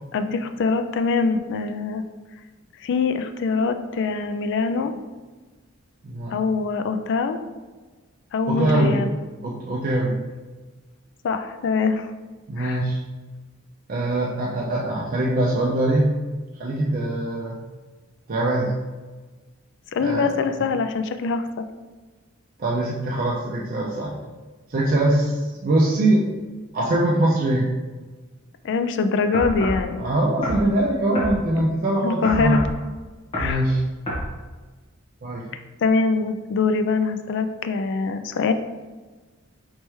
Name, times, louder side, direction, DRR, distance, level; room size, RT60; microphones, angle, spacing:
voice 1, 0.1-2.0 2.8-4.9 6.3-7.4 8.3-9.1 11.2-12.1 12.6-12.8 19.9-21.7 28.6-30.0 32.0-32.6 33.3-33.6 35.8-38.5, left 4 dB, 60° left, 9 dB, 0.3 m, -23 dB
voice 2, 6.0-6.4 8.5-9.0 9.4-10.2 12.5-13.0 13.9-16.1 16.6-17.6 18.3-18.7 20.0-20.3 22.6-24.1 24.7-26.3 26.7-27.7 30.0-32.6 33.4-33.8 35.2-35.5, right 1 dB, 40° right, -4 dB, 0.4 m, -22 dB
sound 1, 29.3-29.8 30.4-30.7 31.1-31.4 32.2-32.8 33.3-33.6 34.1-34.3, equal, 30° left, 1.2 m, -27 dB
4.4 x 3.3 x 3.1 m, 1.3 s
head